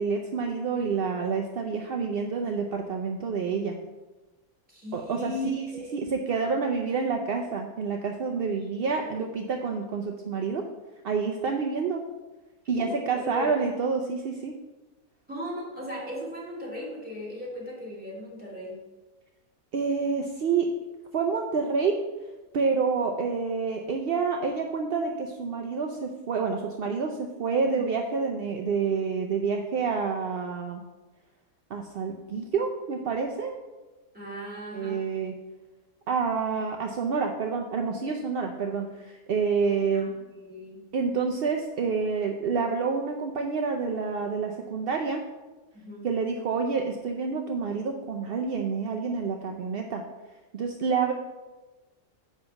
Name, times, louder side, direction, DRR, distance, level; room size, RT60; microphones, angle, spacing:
voice 1, 0.0-3.8 4.9-5.3 5.9-10.7 11.0-12.0 12.7-14.5 19.7-20.7 21.1-22.0 22.5-30.8 31.7-33.6 34.7-35.3 36.1-40.1 40.9-45.2 46.0-50.0 50.5-51.1, right 5 dB, 60° right, 3 dB, 0.6 m, -28 dB
voice 2, 4.7-5.9 6.3-6.5 8.9-9.2 12.8-13.5 15.3-18.8 27.7-27.8 34.1-35.1 39.9-40.8 45.7-46.1, equal, 5° right, -4 dB, 2.7 m, -37 dB
9.9 x 3.4 x 7.0 m, 1.1 s
omnidirectional pair, 1.6 m